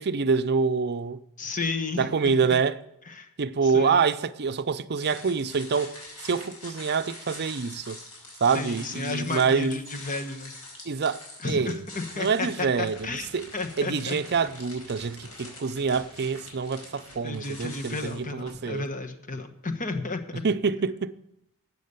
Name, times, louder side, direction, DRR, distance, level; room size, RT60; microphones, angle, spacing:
voice 1, 0.0-1.2 2.0-2.8 3.4-5.9 6.2-8.0 8.4-9.8 10.9-11.8 12.2-13.5 13.8-18.8 20.4-21.2, right 5 dB, 50° right, 0.6 m, -26 dB
voice 2, 1.4-2.6 3.1-3.3 3.6-4.0 8.5-10.5 11.4-13.3 13.5-14.2 17.2-20.4, left 3 dB, 35° left, 1.2 m, -33 dB
sound 1, 5.0-18.5, left 2 dB, 80° left, 4.9 m, -45 dB
12.5 x 8.3 x 6.7 m
head